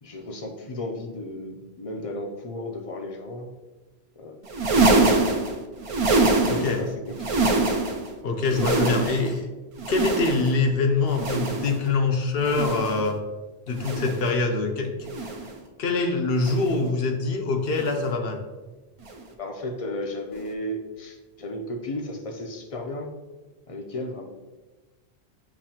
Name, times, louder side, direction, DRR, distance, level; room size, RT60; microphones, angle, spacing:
voice 1, 0.0-3.5 4.2-4.4 6.2-7.6 19.4-23.1 23.7-24.2, left 1 dB, 45° left, 2 dB, 0.5 m, -34 dB
sound 1, 4.4-6.8 7.1-8.1 8.4-9.4 9.8-10.6 11.1-11.8 12.4-13.1 13.7-14.3 15.0-15.6 16.4-16.8 17.7-18.0 19.0-19.2 20.4-20.5, right 2 dB, 50° right, 0.4 m, -24 dB
voice 2, 6.5-6.8 8.2-9.5 9.9-13.2 13.7-15.1 15.8-18.4, left 3 dB, 70° left, 4 dB, 0.8 m, -24 dB
7.0 x 2.6 x 2.8 m, 1.2 s
omnidirectional pair, 1.1 m